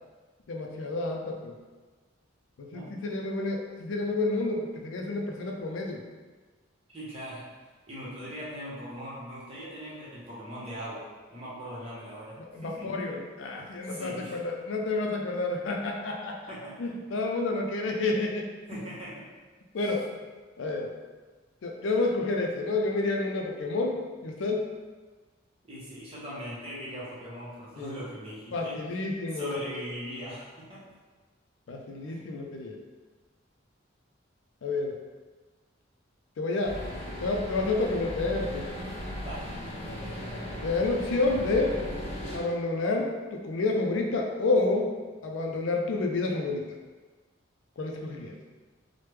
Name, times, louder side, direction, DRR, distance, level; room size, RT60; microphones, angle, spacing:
voice 1, 0.5-1.5 2.6-6.0 12.5-16.4 16.8-18.5 19.7-20.0 20.6-20.9 21.6-24.0 24.2-24.7 27.8-27.9 28.5-29.6 31.7-32.8 34.6-34.9 36.4-36.8 37.2-38.7 40.6-41.8 42.3-44.9 45.2-46.6 47.8-48.3, left 3 dB, 70° left, 1 dB, 0.4 m, -29 dB
voice 2, 6.9-7.5 7.9-13.0 13.9-14.4 16.5-16.9 18.7-19.3 19.8-20.0 25.6-28.8 29.3-30.8 32.1-32.2 39.2-39.5, equal, 30° right, -8 dB, 0.8 m, -40 dB
sound 1, 36.6-42.4, equal, 50° left, 0.9 m, -37 dB
3.2 x 2.1 x 3.1 m, 1.3 s
head